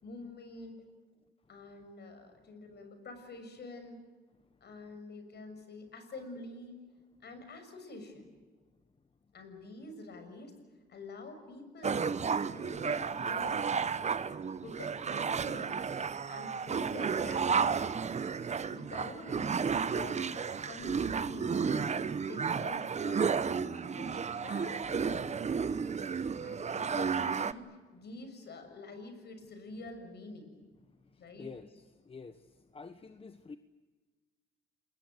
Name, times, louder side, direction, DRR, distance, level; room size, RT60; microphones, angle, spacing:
voice 1, 0.0-0.8 1.5-4.0 4.6-6.8 7.2-8.3 9.3-10.6 10.9-12.0 12.2-13.6 14.6-15.7 16.3-17.7 18.7-21.9 22.2-25.4 26.4-27.7 27.9-30.5 31.2-31.5, left 2 dB, 55° left, 7 dB, 6.8 m, -47 dB
sound 1, 11.8-27.5, right 6 dB, 35° right, 1.0 m, -32 dB
voice 2, 31.4-32.4 32.7-33.6, left 4 dB, 30° left, 10 dB, 1.3 m, -48 dB
28.0 x 21.0 x 8.1 m, 1.3 s
cardioid pair, 90°, 20 cm